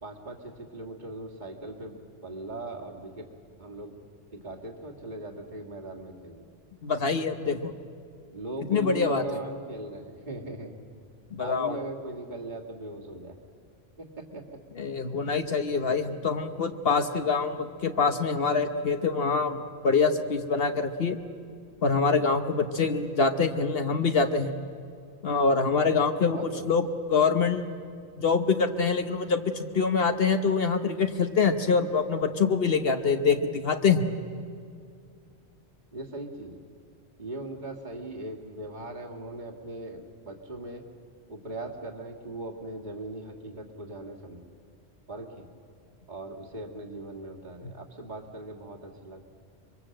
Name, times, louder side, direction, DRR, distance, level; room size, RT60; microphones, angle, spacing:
voice 1, 0.0-2.0 2.2-3.2 3.6-4.0 4.3-6.5 8.3-10.8 11.4-13.4 14.0-14.4 26.3-26.8 35.9-36.6 37.2-40.8 41.3-44.5 45.1-45.5 46.1-49.2, right 2 dB, 45° right, 0 dB, 2.1 m, -39 dB
voice 2, 6.8-7.7 8.7-9.2 11.3-11.8 14.8-21.2 21.8-24.5 25.2-26.4 26.6-27.8 28.2-34.1, left 5 dB, 60° left, 7 dB, 1.2 m, -25 dB
25.0 x 23.0 x 7.7 m, 2.3 s
omnidirectional pair, 1.1 m